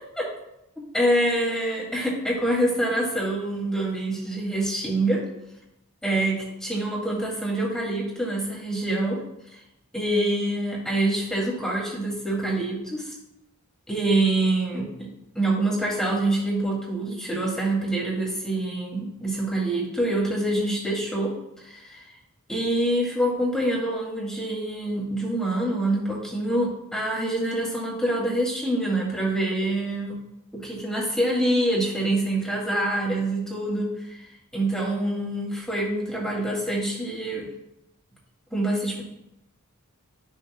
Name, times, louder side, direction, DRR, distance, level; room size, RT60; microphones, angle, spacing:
voice 1, 0.9-5.2 6.0-9.2 9.9-13.1 13.9-15.1 15.3-21.3 21.6-22.0 22.5-30.2 30.5-34.2 34.5-37.5 38.5-39.0, right 1 dB, 5° left, -4 dB, 2.5 m, -26 dB
13.0 x 6.5 x 2.3 m, 0.85 s
head